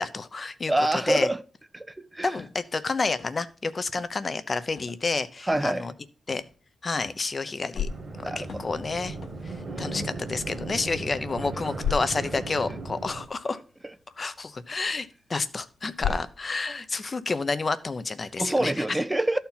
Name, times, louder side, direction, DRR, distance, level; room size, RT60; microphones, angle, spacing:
voice 1, 0.0-1.3 2.2-5.9 6.3-6.4 6.8-7.9 8.4-9.2 9.8-13.6 14.2-19.0, left 3 dB, 35° left, 0.7 m, -30 dB
voice 2, 0.7-1.4 1.7-2.3 5.4-5.9 8.2-8.5 16.1-16.2 18.4-19.4, right 1 dB, 10° right, 0.4 m, -26 dB
sound 1, 2.4-2.6 3.2-3.5 3.8-4.2 4.8-5.0 5.5-5.7 6.3-6.6 7.0-7.3 7.8-8.0 8.4-8.8 9.2-9.5 9.9-10.3 10.7-10.8, left 4 dB, 65° left, 1.3 m, -44 dB
sound 2, 7.4-18.4, left 7 dB, 85° left, 0.7 m, -39 dB
sound 3, 7.9-13.2, right 3 dB, 40° right, 1.7 m, -37 dB
13.0 x 4.4 x 5.6 m
wide cardioid pair, 125°, 0 cm